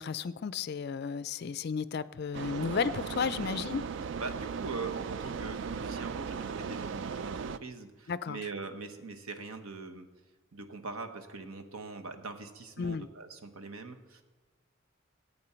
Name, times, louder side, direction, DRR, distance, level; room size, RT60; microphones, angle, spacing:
voice 1, 0.0-3.8 8.1-8.4 12.8-13.1, left 6 dB, 50° left, 16 dB, 0.4 m, -33 dB
sound 1, 2.3-7.6, right 6 dB, 60° right, 0.3 m, -37 dB
voice 2, 4.2-10.1 10.5-14.2, right 4 dB, 90° right, 6 dB, 1.1 m, -42 dB
16.0 x 8.6 x 4.4 m, 1.3 s
head